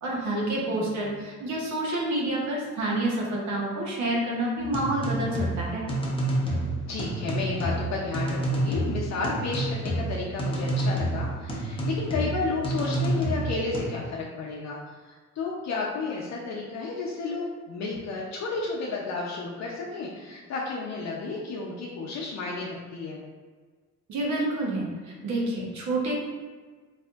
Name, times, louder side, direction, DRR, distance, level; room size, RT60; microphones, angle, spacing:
voice 1, 0.0-5.8 24.1-24.9 25.2-26.1, right 1 dB, 70° right, -3 dB, 1.0 m, -28 dB
voice 2, 0.6-1.3 6.9-14.8 15.0-23.2, left 3 dB, 60° left, -4 dB, 0.6 m, -32 dB
sound 1, 4.6-13.9, right 1 dB, 20° left, 0.7 m, -29 dB
4.1 x 2.5 x 2.4 m, 1.4 s
cardioid pair, 90°, 30 cm